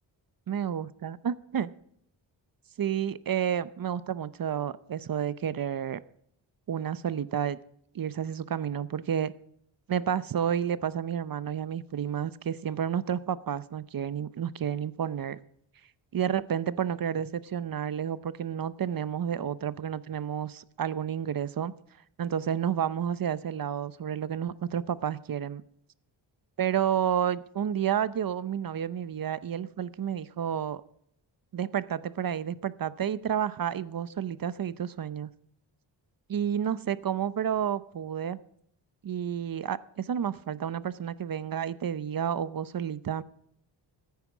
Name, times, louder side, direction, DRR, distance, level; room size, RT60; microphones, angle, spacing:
voice 1, 0.5-1.7 2.8-6.0 6.7-7.6 7.9-9.3 9.9-15.4 16.1-21.8 22.2-25.6 26.6-30.8 31.5-35.3 36.3-38.4 39.0-43.2, right 9 dB, 45° right, 17 dB, 0.7 m, -30 dB
14.0 x 9.4 x 6.1 m, 0.70 s
cardioid pair, 90°, 47 cm